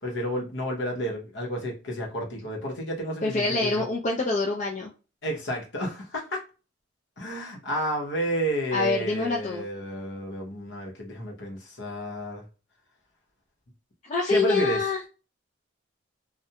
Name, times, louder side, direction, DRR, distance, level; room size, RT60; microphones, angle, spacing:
voice 1, 0.0-3.8 5.2-6.4 7.2-12.4 14.3-14.8, equal, 60° left, 0 dB, 0.9 m, -31 dB
voice 2, 3.2-4.9 8.7-9.6 14.0-15.0, left 3 dB, 35° left, -1 dB, 0.4 m, -26 dB
2.4 x 2.1 x 2.8 m, 0.33 s
head